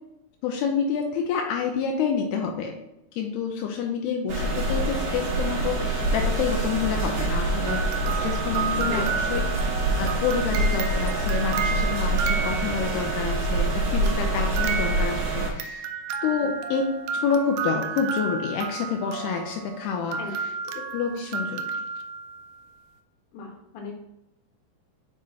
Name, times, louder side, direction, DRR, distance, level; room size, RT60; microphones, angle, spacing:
voice 1, 0.4-2.8 3.1-9.4 10.0-15.9 16.2-16.9 17.1-20.2 20.8-21.7, left 6 dB, 85° left, 2 dB, 2.6 m, -28 dB
sound 1, 4.3-15.5, right 2 dB, 65° right, 2.8 m, -26 dB
sound 2, 7.7-13.2 14.1-22.6, right 6 dB, 80° right, 2.2 m, -32 dB
voice 2, 23.3-24.0, left 4 dB, 60° left, -1 dB, 2.6 m, -37 dB
7.4 x 5.1 x 2.9 m, 0.88 s
omnidirectional pair, 4.7 m